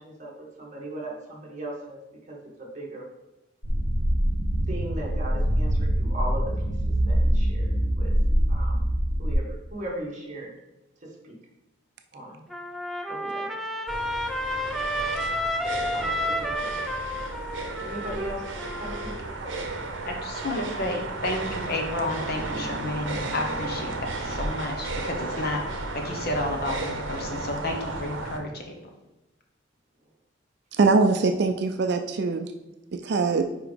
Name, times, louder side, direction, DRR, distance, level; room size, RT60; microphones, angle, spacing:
voice 1, 0.0-2.0 2.3-3.1 4.7-8.1 8.5-8.8 9.2-10.5 11.0-11.4 12.1-12.4 13.1-13.7 15.9-16.8 17.8-18.5 18.8-19.7, right 1 dB, 40° right, -2 dB, 1.5 m, -38 dB
sound 1, 3.6-9.3, equal, 70° left, 2.1 m, -24 dB
Trumpet, 12.5-19.1, equal, ahead, 0.4 m, -31 dB
sound 2, 13.9-28.4, right 2 dB, 75° right, 0.9 m, -33 dB
voice 2, 20.1-28.8, left 2 dB, 55° left, 3 dB, 1.0 m, -31 dB
voice 3, 30.7-32.5 32.9-33.4, right 4 dB, 60° right, 6 dB, 0.4 m, -22 dB
4.9 x 4.8 x 5.1 m, 0.96 s
head